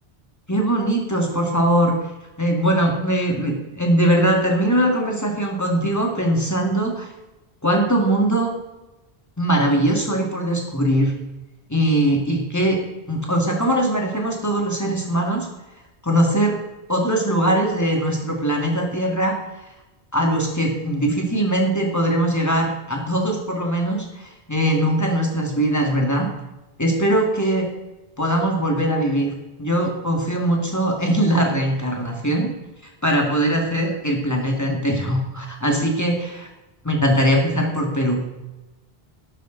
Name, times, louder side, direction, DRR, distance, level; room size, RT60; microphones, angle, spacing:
voice 1, 0.5-2.0 2.4-7.1 7.6-8.5 9.4-11.1 11.7-15.5 16.0-16.6 16.9-19.4 20.1-26.3 26.8-27.7 28.2-32.5 33.0-36.5 36.8-38.2, right 1 dB, 15° left, 0 dB, 2.1 m, -21 dB
12.5 x 9.1 x 4.0 m, 1.0 s
omnidirectional pair, 1.1 m